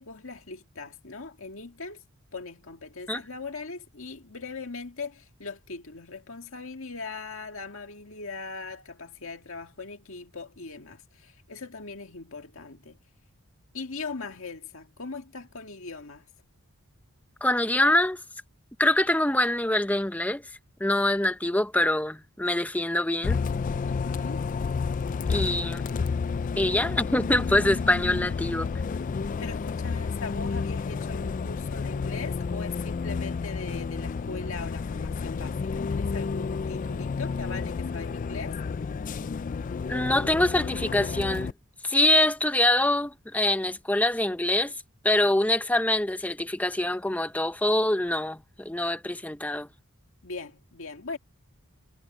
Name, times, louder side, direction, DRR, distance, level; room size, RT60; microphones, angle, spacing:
voice 1, 0.0-2.0 2.3-13.0 13.7-16.2 23.8-24.5 29.4-38.6 50.2-51.2, left 4 dB, 65° left, 2.0 m, -40 dB
voice 2, 17.4-18.2 18.8-20.4 20.8-23.4 25.3-25.8 26.6-28.7 39.9-41.5 41.8-44.7 45.0-49.7, left 1 dB, 5° left, 0.8 m, -24 dB
Bus, 23.2-41.5, left 5 dB, 35° left, 0.3 m, -31 dB
head